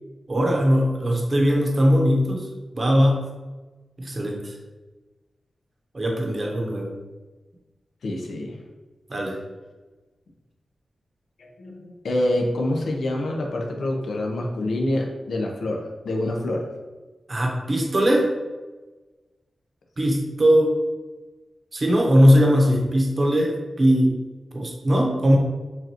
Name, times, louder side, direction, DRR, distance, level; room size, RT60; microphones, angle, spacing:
voice 1, 0.3-2.5 2.7-3.2 4.0-4.5 5.9-6.9 9.1-9.4 17.3-18.3 20.0-20.8 21.7-24.1 24.5-25.4, equal, 35° right, -1 dB, 0.9 m, -20 dB
voice 2, 8.0-8.6 11.4-16.7, left 1 dB, 80° left, 0 dB, 0.8 m, -26 dB
7.0 x 2.6 x 3.0 m, 1.2 s
wide cardioid pair, 105°, 0 cm